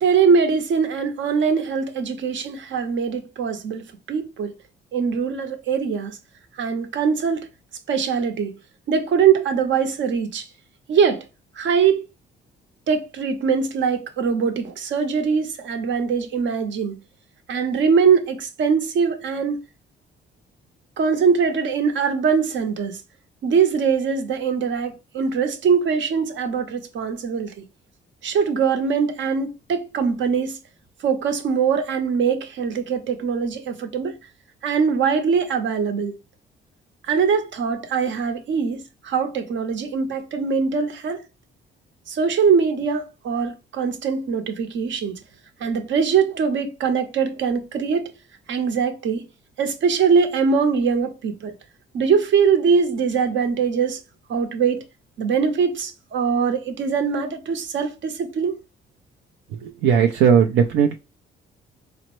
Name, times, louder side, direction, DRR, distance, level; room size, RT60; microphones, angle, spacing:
voice 1, 0.0-4.5 4.9-6.2 6.6-7.5 7.9-8.6 8.9-10.5 10.9-11.2 11.6-12.1 12.9-17.0 17.5-19.6 21.0-23.0 23.4-27.6 28.2-30.6 31.0-34.2 34.6-36.1 37.1-41.2 42.1-45.2 45.6-48.1 48.5-49.3 49.6-51.5 51.9-54.0 54.3-54.8 55.2-58.6, right 6 dB, 70° right, 0.8 m, -22 dB
voice 2, 59.5-60.9, right 7 dB, 90° right, 0.5 m, -17 dB
4.1 x 2.0 x 3.0 m
cardioid pair, 90°, 20 cm